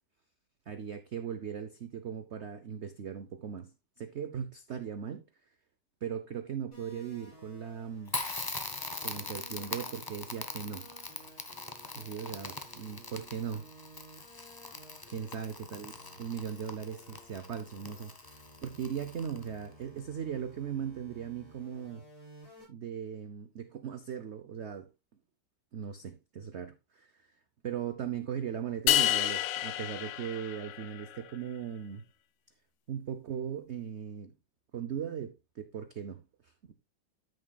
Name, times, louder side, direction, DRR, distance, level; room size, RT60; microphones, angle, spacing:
voice 1, 0.7-5.2 6.0-8.2 9.0-10.9 12.0-13.7 15.1-15.9 16.2-22.0 22.7-24.9 25.7-27.3 27.6-32.1 32.9-34.3 34.7-36.7, right 8 dB, 55° right, 0.7 m, -38 dB
sound 1, 6.7-22.6, right 1 dB, 60° left, 6.9 m, -56 dB
Crackle, 8.1-19.7, left 3 dB, 20° left, 0.6 m, -42 dB
sound 2, 28.9-31.2, left 12 dB, 85° left, 1.3 m, -29 dB
13.0 x 6.4 x 2.3 m
omnidirectional pair, 1.9 m